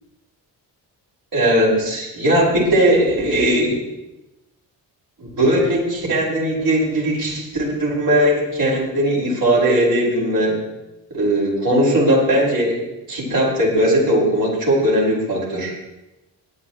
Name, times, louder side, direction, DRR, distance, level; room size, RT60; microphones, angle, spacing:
voice 1, 1.3-3.8 5.2-10.6 11.1-15.7, right 1 dB, 50° right, -4 dB, 5.3 m, -18 dB
17.5 x 10.5 x 3.1 m, 0.97 s
supercardioid pair, 50°, 44 cm